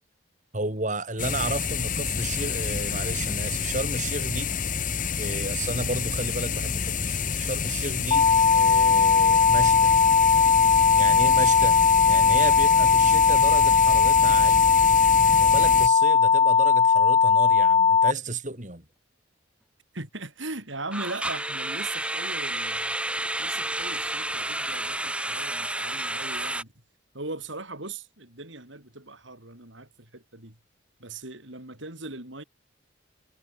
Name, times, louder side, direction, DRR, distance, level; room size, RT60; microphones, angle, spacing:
voice 1, 0.5-4.5 5.2-9.9 10.9-11.8 12.1-14.7 15.3-18.8, right 2 dB, 40° right, 4.7 m, -32 dB
sound 1, 1.2-15.9, left 6 dB, 40° left, 1.6 m, -29 dB
sound 2, 8.1-18.1, left 5 dB, 25° left, 0.8 m, -19 dB
sound 3, 14.7-15.0 15.3-15.5 16.0-16.1 20.9-26.6, right 1 dB, 5° right, 3.3 m, -30 dB
voice 2, 19.9-23.0 23.4-26.7 27.1-30.6 31.0-32.4, right 2 dB, 75° right, 6.1 m, -39 dB
head